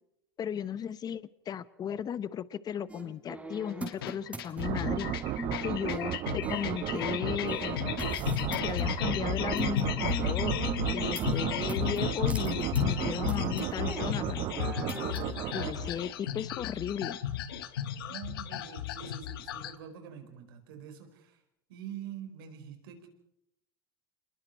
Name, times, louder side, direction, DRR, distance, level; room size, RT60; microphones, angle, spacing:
voice 1, 0.4-5.1 5.6-8.0 8.6-10.7 10.9-14.5 15.5-17.2, left 8 dB, 35° left, 17 dB, 0.9 m, -36 dB
sound 1, 2.9-9.8 10.1-14.1 14.3-15.2, right 2 dB, 10° right, 4.5 m, -41 dB
sound 2, 3.9-19.7, left 10 dB, 85° left, 1.4 m, -34 dB
sound 3, 4.6-16.3, right 14 dB, 50° right, 0.8 m, -34 dB
voice 2, 18.0-21.4 21.7-23.1, right 9 dB, 80° right, 6 dB, 4.8 m, -45 dB
27.5 x 21.5 x 4.6 m, 0.79 s
hypercardioid pair, 95°, 12 cm